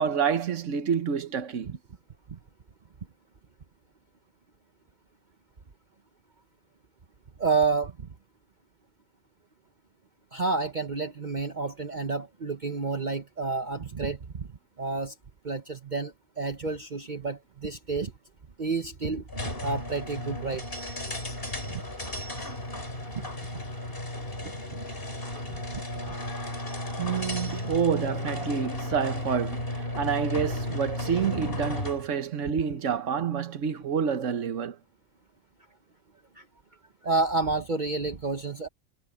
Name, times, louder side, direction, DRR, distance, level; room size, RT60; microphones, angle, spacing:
voice 1, 0.0-1.8 22.4-22.6 27.0-34.8, right 7 dB, 70° right, 1.4 m, -28 dB
voice 2, 7.4-8.1 10.3-14.5 14.8-15.1 15.4-18.1 18.6-19.2 19.6-20.6 21.7-21.8 23.2-23.3 25.5-26.1 36.4-36.5 37.0-38.7, right 4 dB, 40° right, 1.0 m, -30 dB
sound 1, 19.3-32.1, left 1 dB, 45° left, 4.7 m, -34 dB
omnidirectional pair, 1.4 m